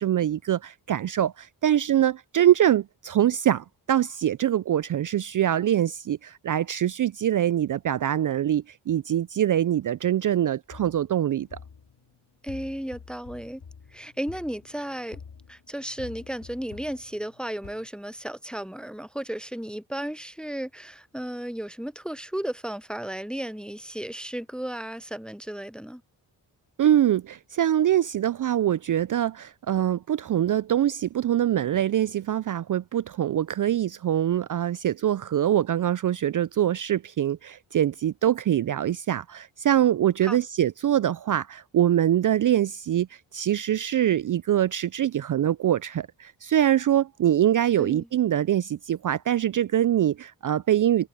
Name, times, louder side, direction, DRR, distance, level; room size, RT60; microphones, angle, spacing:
voice 1, 0.0-11.6 26.8-51.1, right 11 dB, 45° right, 0.4 m, -24 dB
sound 1, 10.7-17.9, left 6 dB, 60° left, 2.8 m, -48 dB
voice 2, 12.4-13.6 13.9-15.2 15.5-26.0 40.2-40.4 47.8-48.1, right 1 dB, ahead, 0.6 m, -34 dB
cardioid pair, 50°, 45 cm